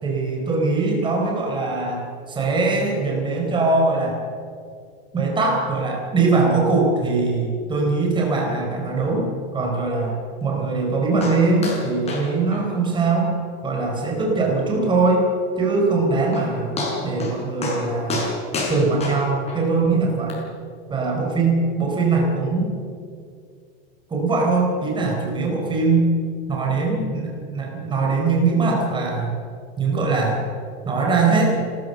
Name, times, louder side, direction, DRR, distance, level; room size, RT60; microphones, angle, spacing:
voice 1, 0.0-4.2 5.1-13.3 13.6-15.3 15.6-16.7 17.0-18.2 18.7-20.4 20.9-22.7 24.1-26.1 26.5-29.4 29.8-30.4 30.8-31.5, right 3 dB, 15° right, -1 dB, 4.4 m, -21 dB
sound 1, 11.2-11.4 11.6-11.8 12.1-12.3 12.5-12.6 13.0-13.1 13.5-13.6 14.1-14.2 15.9-16.0 16.3-16.5 16.8-17.3 17.6-17.8 18.1-19.6 20.3-20.4, left 3 dB, 20° left, 5.8 m, -28 dB
30.0 x 13.5 x 7.0 m, 2.3 s
supercardioid pair, 160°, 29 cm